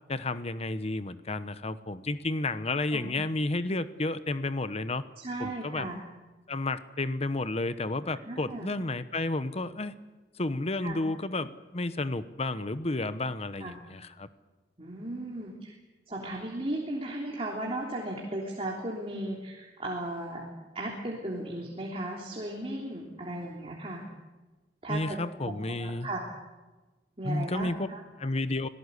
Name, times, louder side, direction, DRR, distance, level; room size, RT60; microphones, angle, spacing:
voice 1, 0.1-5.0 5.4-5.9 6.5-10.0 10.4-14.3 24.9-26.1 27.2-27.9 28.2-28.7, left 2 dB, 35° left, 13 dB, 1.0 m, -31 dB
voice 2, 5.2-6.0 8.2-8.7 10.8-11.0 13.6-13.7 14.8-15.7 16.1-20.5 20.8-24.0 24.8-26.3 27.2-28.0, right 1 dB, 35° right, -1 dB, 3.4 m, -36 dB
25.5 x 17.5 x 8.3 m, 1.2 s
head